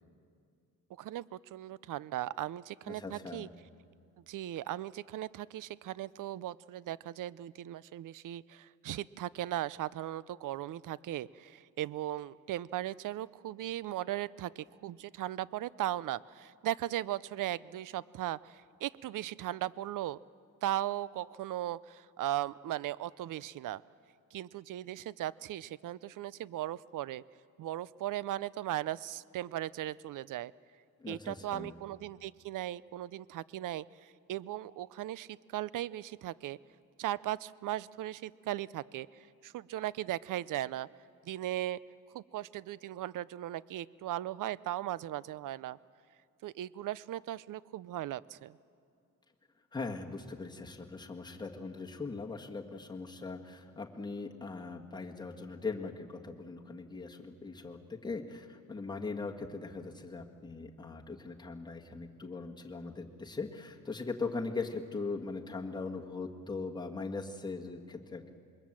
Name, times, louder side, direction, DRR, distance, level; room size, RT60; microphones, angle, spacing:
voice 1, 1.0-3.5 4.3-20.2 20.6-23.8 24.3-27.2 27.6-30.5 31.1-36.6 37.0-40.9 41.2-41.8 42.1-45.8 46.4-48.6, right 13 dB, 65° right, 20 dB, 0.5 m, -37 dB
voice 2, 2.9-3.5 31.0-31.7 49.7-68.3, left 4 dB, 10° left, 0 dB, 1.7 m, -40 dB
26.5 x 22.0 x 7.5 m, 2.4 s
cardioid pair, 135°, 35 cm